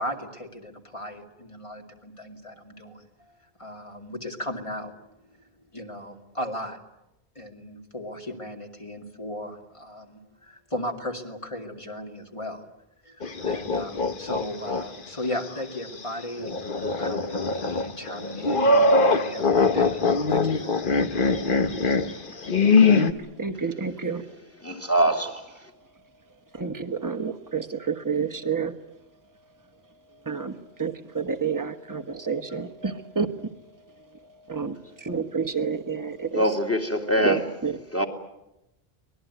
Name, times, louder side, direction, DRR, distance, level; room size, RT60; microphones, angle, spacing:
voice 1, 0.0-3.1 3.6-4.9 5.7-6.8 7.4-12.6 13.0-20.0 20.3-21.1, left 1 dB, 30° left, 2 dB, 2.5 m, -36 dB
sound 1, 13.2-14.8 15.2-15.3 16.4-23.1, left 3 dB, 55° left, 1.4 m, -22 dB
voice 2, 22.1-24.2 25.7-26.1 26.5-28.7 29.3-29.5 29.8-36.6 37.2-38.0, right 5 dB, 20° right, 6 dB, 1.3 m, -31 dB
voice 3, 24.6-25.4 36.3-37.4 37.9-38.1, right 1 dB, 15° left, 5 dB, 2.6 m, -23 dB
24.0 x 20.0 x 9.4 m, 0.89 s
omnidirectional pair, 1.1 m